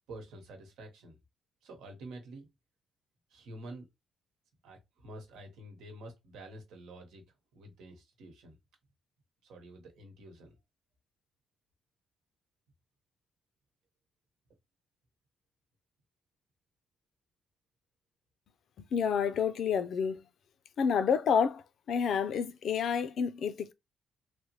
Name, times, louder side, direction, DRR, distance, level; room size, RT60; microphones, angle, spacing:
voice 1, 0.1-1.2 1.6-2.5 3.3-3.8 4.6-7.2 7.5-8.6 9.4-10.5, right 1 dB, 85° right, 1.1 m, -48 dB
voice 2, 18.9-20.2 20.8-23.7, left 7 dB, 65° left, 0.4 m, -29 dB
3.3 x 2.1 x 3.0 m
cardioid pair, 90°, 0 cm